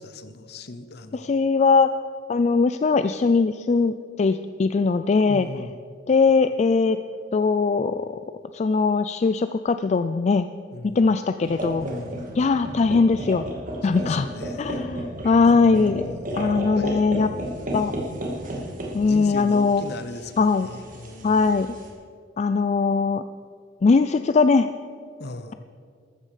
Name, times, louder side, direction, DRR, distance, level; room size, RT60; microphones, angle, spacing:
voice 1, 0.0-1.3 5.3-5.8 10.7-11.1 11.8-12.3 13.9-14.9 15.7-17.6 19.0-21.5 25.2-25.5, left 2 dB, 60° left, 11 dB, 0.9 m, -38 dB
voice 2, 1.2-1.9 2.3-5.5 6.1-7.0 7.3-8.2 8.5-10.5 10.8-11.8 12.4-13.4 13.8-14.3 14.6-16.0 16.4-17.3 17.7-17.9 18.9-19.8 20.4-20.7 21.2-21.7 22.4-23.2 23.8-24.7, left 4 dB, 35° left, 10 dB, 0.3 m, -20 dB
sound 1, 11.4-21.9, right 1 dB, 45° right, 2.2 m, -33 dB
14.0 x 13.0 x 5.0 m, 2.2 s
head